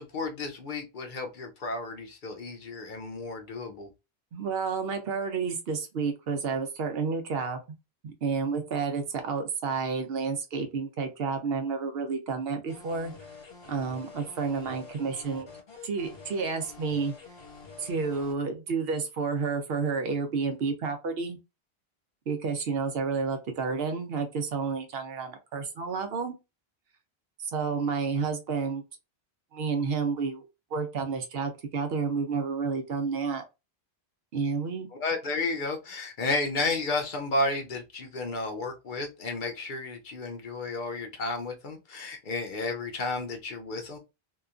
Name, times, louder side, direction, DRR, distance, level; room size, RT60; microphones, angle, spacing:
voice 1, 0.0-3.9 34.9-44.0, left 3 dB, 55° left, 0.8 m, -32 dB
voice 2, 4.3-7.6 8.0-13.1 13.7-15.5 15.8-17.1 17.8-21.4 22.3-26.3 27.4-28.8 29.5-30.4 30.7-33.4 34.3-34.9, right 5 dB, 70° right, 0.8 m, -30 dB
sound 1, 12.7-18.3, left 4 dB, 85° left, 1.4 m, -48 dB
2.8 x 2.3 x 2.4 m
omnidirectional pair, 1.0 m